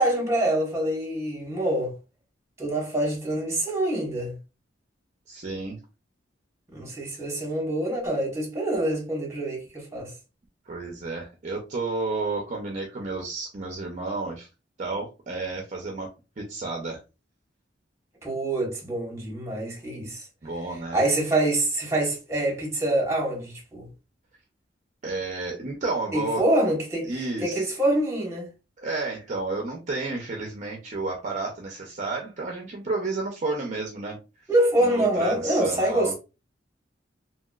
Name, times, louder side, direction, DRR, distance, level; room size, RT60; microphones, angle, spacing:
voice 1, 0.0-1.9 2.6-4.3 6.7-10.1 18.2-20.2 20.9-23.9 26.1-27.1 27.4-28.5 34.5-36.1, right 1 dB, 15° right, 1.2 m, -25 dB
voice 2, 5.3-5.8 10.7-14.5 14.8-16.1 16.4-17.0 20.4-21.0 25.0-26.4 27.0-27.7 28.8-34.2 34.8-36.1, right 3 dB, 40° right, 0.5 m, -31 dB
2.9 x 2.8 x 2.3 m
head